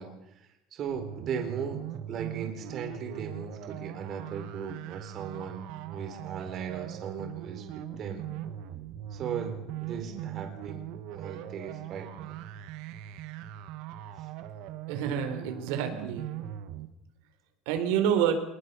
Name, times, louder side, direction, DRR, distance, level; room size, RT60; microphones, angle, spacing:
voice 1, 0.0-8.3 9.1-12.4 14.2-14.3, right 7 dB, 35° right, 5 dB, 4.3 m, -38 dB
sound 1, 0.9-16.9, right 11 dB, 60° right, 1.9 m, -40 dB
voice 2, 14.9-16.3 17.7-18.3, right 9 dB, 85° right, 6 dB, 4.2 m, -28 dB
25.0 x 21.0 x 7.0 m, 0.84 s
cardioid pair, 175°, 0 cm